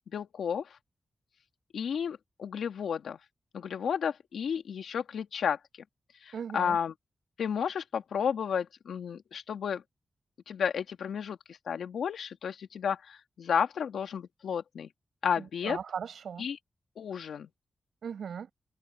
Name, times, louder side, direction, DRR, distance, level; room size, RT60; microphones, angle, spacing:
voice 1, 0.1-0.8 1.7-3.2 3.5-5.6 6.2-6.9 7.4-9.8 10.5-14.9 15.2-15.8 16.4-16.6 17.0-17.5, left 7 dB, 85° left, 2.5 m, -32 dB
voice 2, 6.3-6.8 15.4-16.5 18.0-18.5, right 7 dB, 80° right, 7.2 m, -38 dB
cardioid pair, 50°, 0 cm